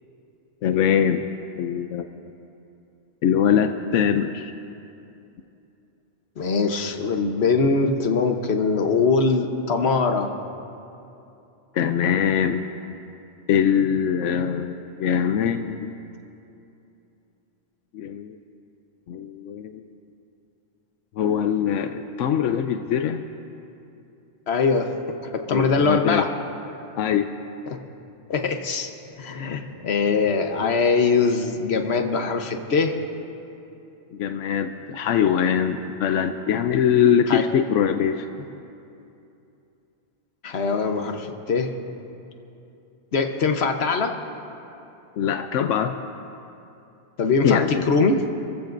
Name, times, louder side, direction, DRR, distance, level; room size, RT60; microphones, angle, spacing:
voice 1, 0.6-1.3 1.6-2.1 3.2-4.5 11.7-12.7 13.5-15.9 17.9-18.4 19.1-19.8 21.2-23.2 25.5-26.3 27.0-27.3 34.1-38.3 45.2-45.9 47.4-47.9, left 8 dB, 90° left, 7 dB, 1.0 m, -22 dB
voice 2, 6.4-10.3 24.5-25.0 25.3-26.3 27.7-27.8 28.3-28.9 29.2-33.0 37.3-37.4 40.4-41.7 43.1-44.2 47.2-48.2, left 4 dB, 60° left, 5 dB, 1.3 m, -22 dB
28.5 x 15.0 x 2.6 m, 2.8 s
omnidirectional pair, 1.2 m